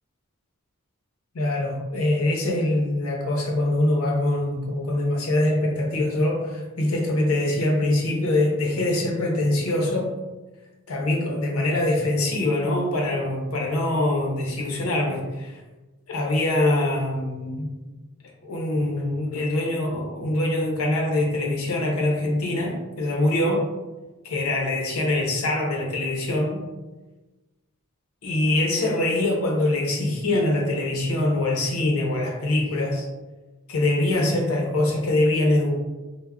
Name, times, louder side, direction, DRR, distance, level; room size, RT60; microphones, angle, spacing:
voice 1, 1.3-10.1 10.9-15.6 16.1-17.7 18.4-23.6 24.2-26.6 28.2-33.1 33.7-35.7, left 1 dB, 80° left, 0 dB, 0.5 m, -23 dB
3.4 x 2.0 x 2.2 m, 1.2 s
head